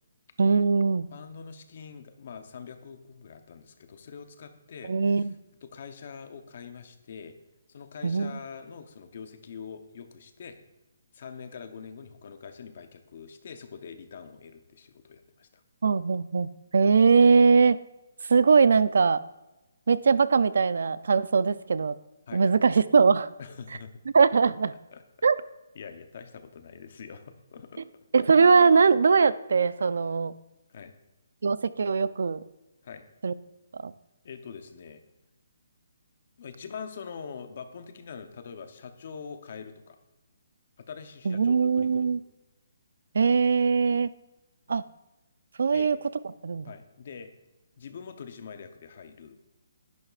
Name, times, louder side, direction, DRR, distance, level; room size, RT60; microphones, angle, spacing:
voice 1, 0.4-1.1 4.9-5.3 8.0-8.3 15.8-17.8 18.2-19.2 19.9-22.0 22.3-23.3 24.1-24.7 25.2-25.4 28.1-30.3 31.4-32.4 33.2-33.3 33.7-33.9 41.3-42.2 43.1-44.1 44.7-44.8 45.6-46.0 46.4-46.7, right 5 dB, 65° right, 16 dB, 0.4 m, -21 dB
voice 2, 1.1-5.2 5.6-7.4 7.7-10.6 11.1-15.6 22.3-22.4 23.4-23.9 24.9-25.0 25.7-28.2 30.7-30.9 32.8-33.1 34.2-35.0 36.4-40.0 40.8-42.1 45.7-45.9 46.7-47.3 47.8-49.4, left 6 dB, 40° left, 8 dB, 0.8 m, -44 dB
10.5 x 9.8 x 2.4 m, 1.0 s
hypercardioid pair, 175°, 0 cm